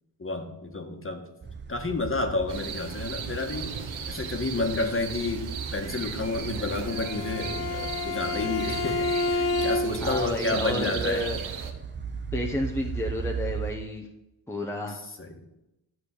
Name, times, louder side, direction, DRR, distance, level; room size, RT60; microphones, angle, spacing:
voice 1, 0.2-1.3 1.7-3.8 4.1-11.3 15.2-15.5, left 3 dB, 25° left, 4 dB, 1.8 m, -30 dB
sound 1, 1.4-13.7, right 6 dB, 20° right, 1.0 m, -37 dB
sound 2, 2.5-11.7, right 7 dB, 75° right, 1.6 m, -37 dB
Bowed string instrument, 6.8-10.2, left 3 dB, 50° left, 1.0 m, -29 dB
voice 2, 10.0-11.4 12.3-14.1 14.5-15.0, left 1 dB, 5° left, 1 dB, 1.2 m, -31 dB
11.0 x 4.9 x 8.4 m, 0.91 s
cardioid pair, 90°, 48 cm